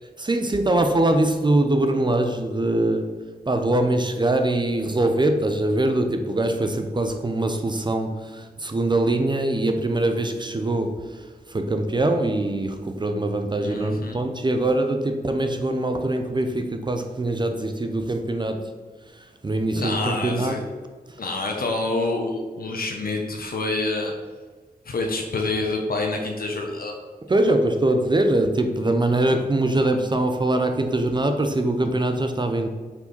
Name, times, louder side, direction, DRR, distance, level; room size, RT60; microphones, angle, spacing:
voice 1, 0.2-18.7 19.1-20.6 27.3-32.7, right 1 dB, 30° right, 6 dB, 0.6 m, -23 dB
voice 2, 13.6-14.2 19.7-20.6 21.2-24.1 24.8-26.9, left 2 dB, 65° left, 1 dB, 1.1 m, -27 dB
6.7 x 4.8 x 5.4 m, 1.4 s
wide cardioid pair, 135°, 16 cm